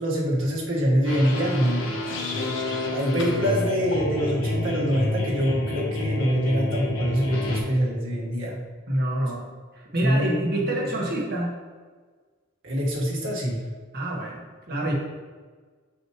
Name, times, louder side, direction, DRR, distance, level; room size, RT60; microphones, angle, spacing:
voice 1, 0.0-1.8 2.9-8.6 10.0-10.9 12.6-13.6, equal, 70° right, -4 dB, 1.8 m, -25 dB
sound 1, 1.0-2.9 3.2-3.4 3.9-4.1, left 4 dB, 65° left, 1.1 m, -38 dB
sound 2, 1.1-7.6, left 2 dB, 85° left, 1.2 m, -28 dB
voice 2, 8.9-9.4 9.7-11.6 13.9-14.9, right 1 dB, 50° right, -3 dB, 1.6 m, -27 dB
6.6 x 6.0 x 3.2 m, 1.5 s
head